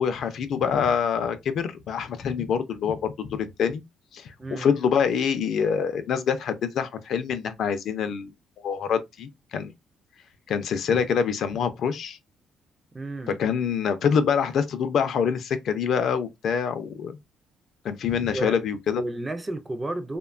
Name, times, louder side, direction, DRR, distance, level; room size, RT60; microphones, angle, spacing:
voice 1, 0.0-3.8 4.1-8.3 8.6-9.7 10.5-12.2 13.4-17.2 17.8-19.0, left 7 dB, 55° left, 0.4 m, -25 dB
voice 2, 4.4-4.7 12.9-13.4 18.3-18.6 18.9-20.2, right 2 dB, 15° right, 0.3 m, -32 dB
2.9 x 2.1 x 2.4 m
cardioid pair, 165°, 0 cm